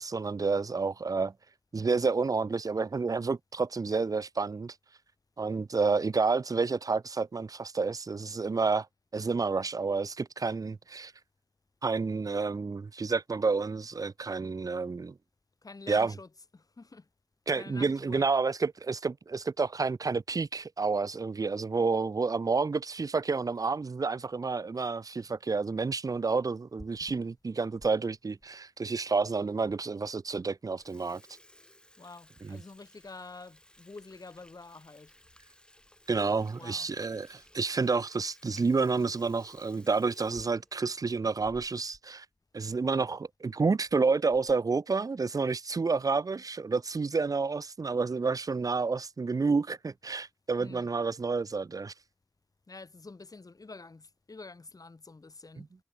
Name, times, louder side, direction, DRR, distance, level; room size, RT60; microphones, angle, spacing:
voice 1, 0.0-1.3 1.7-4.7 5.4-8.9 9.1-11.1 11.8-15.2 15.9-16.1 17.5-31.2 32.4-32.6 36.1-42.3 42.5-51.9, right 4 dB, 75° right, 0.4 m, -29 dB
voice 2, 15.6-17.1 17.6-18.3 32.0-35.1 36.6-36.9 50.6-50.9 52.7-55.7, left 3 dB, 85° left, 3.4 m, -48 dB
Water tap faucet / Sink (filling or washing), 26.7-27.9 28.4-28.5 29.2-29.3 29.7-29.8 30.2-30.4 30.6-42.1 42.4-42.5 42.7-42.9 43.6-43.9 44.3-44.7, left 1 dB, 15° left, 6.3 m, -57 dB
wide cardioid pair, 60°, 6 cm